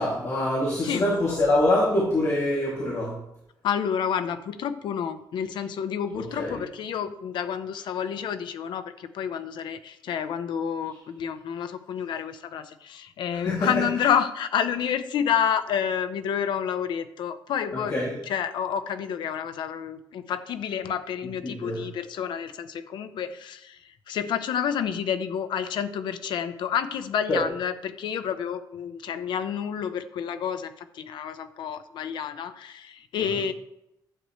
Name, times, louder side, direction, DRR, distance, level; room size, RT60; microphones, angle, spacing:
voice 1, 0.0-3.1 6.4-6.6 13.4-13.7 17.9-18.1 21.4-21.8 27.3-27.4, left 1 dB, 40° left, -5 dB, 2.6 m, -24 dB
voice 2, 3.6-17.9 18.2-23.8 24.1-33.5, left 8 dB, 90° left, 11 dB, 0.8 m, -29 dB
12.5 x 8.0 x 3.2 m, 0.82 s
wide cardioid pair, 175°, 8 cm